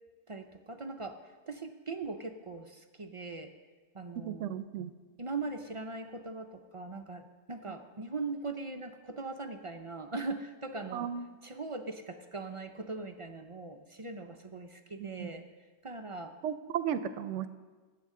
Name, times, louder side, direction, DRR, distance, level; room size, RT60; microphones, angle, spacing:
voice 1, 0.3-1.2 1.5-3.5 3.9-4.6 5.2-11.1 11.4-15.5 15.8-16.3, right 3 dB, 45° right, 6 dB, 0.4 m, -40 dB
voice 2, 4.3-4.9 10.9-11.2 15.0-15.3 16.4-17.5, right 9 dB, 90° right, 12 dB, 0.9 m, -35 dB
19.0 x 8.4 x 3.7 m, 1.4 s
omnidirectional pair, 1.2 m